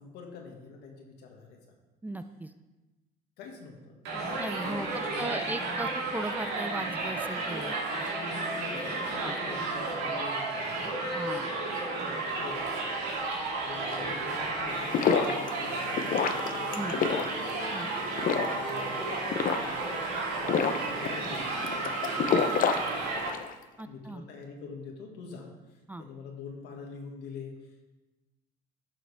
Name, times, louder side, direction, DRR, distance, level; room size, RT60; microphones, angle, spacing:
voice 1, 0.0-1.6 3.4-6.0 8.5-10.8 12.3-12.7 13.5-16.2 16.6-17.1 18.0-20.1 20.4-23.3 23.9-27.9, left 4 dB, 85° left, 1 dB, 1.7 m, -45 dB
voice 2, 2.0-2.5 4.4-4.9 5.2-8.1 9.2-9.3 11.1-11.5 16.7-16.9 17.7-17.9 23.8-24.2 25.9-26.0, right 2 dB, 10° right, 9 dB, 0.4 m, -37 dB
Crowd, 4.0-23.3, right 3 dB, 80° right, 2.1 m, -32 dB
sound 1, 14.7-23.5, left 6 dB, 55° left, 0.7 m, -30 dB
11.5 x 6.3 x 3.4 m, 1.1 s
cardioid pair, 110°, 17 cm